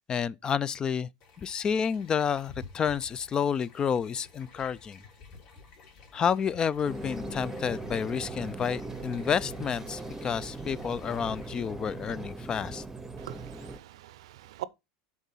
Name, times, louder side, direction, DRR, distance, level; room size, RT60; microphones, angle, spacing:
voice 1, 0.1-1.1 1.4-5.0 6.1-12.8, left 7 dB, 25° left, 0.3 m, -30 dB
sound 1, 1.2-11.7, left 4 dB, 50° left, 3.4 m, -52 dB
sound 2, 6.9-13.8, right 2 dB, 10° right, 0.8 m, -39 dB
voice 2, 13.2-14.6, right 15 dB, 80° right, 0.6 m, -42 dB
7.8 x 3.7 x 5.5 m
supercardioid pair, 115°, 3 cm